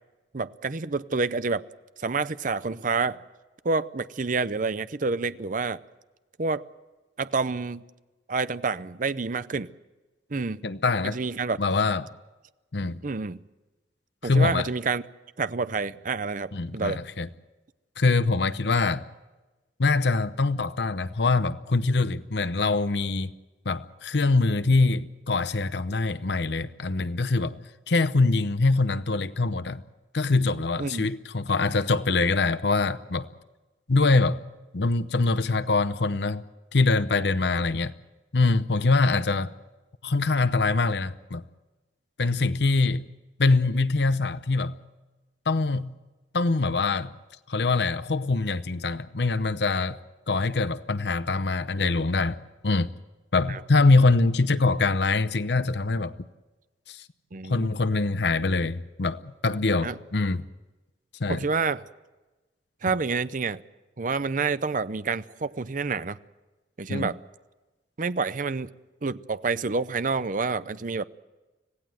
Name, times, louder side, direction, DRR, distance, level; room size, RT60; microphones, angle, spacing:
voice 1, 0.3-1.6 2.0-3.2 3.6-5.8 6.4-6.7 7.2-7.8 8.3-9.7 10.3-10.6 11.1-11.6 13.0-13.4 14.2-15.0 15.4-17.0 30.8-31.1 53.5-53.6 57.3-57.7 59.8-60.0 61.3-61.8 62.8-63.6 64.0-66.2 66.8-67.2 68.0-68.7 69.0-71.1, right 4 dB, 45° right, 0.7 m, -28 dB
voice 2, 10.6-11.2 11.6-12.1 12.7-13.0 14.2-14.7 16.5-17.3 18.0-19.1 19.8-23.3 23.7-27.6 27.9-29.8 30.1-33.3 33.9-34.4 34.7-36.4 36.7-37.9 38.3-39.5 40.0-41.4 42.2-43.0 43.4-44.8 45.5-45.9 46.3-47.1 47.5-50.0 50.3-52.9 53.3-56.2 56.9-57.0 57.5-60.4 61.2-61.4 66.9-67.1, left 3 dB, 70° left, 0.8 m, -24 dB
26.0 x 17.5 x 7.7 m
head